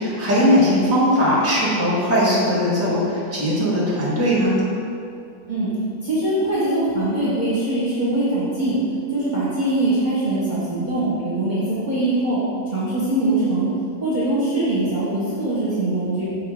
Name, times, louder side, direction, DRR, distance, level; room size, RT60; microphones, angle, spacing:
voice 1, 0.0-4.6, equal, 10° right, -7 dB, 1.3 m, -19 dB
voice 2, 6.0-8.8 9.1-12.4 12.7-13.7 14.0-16.3, right 1 dB, 30° right, -11 dB, 1.3 m, -22 dB
5.7 x 3.7 x 4.9 m, 2.5 s
omnidirectional pair, 1.8 m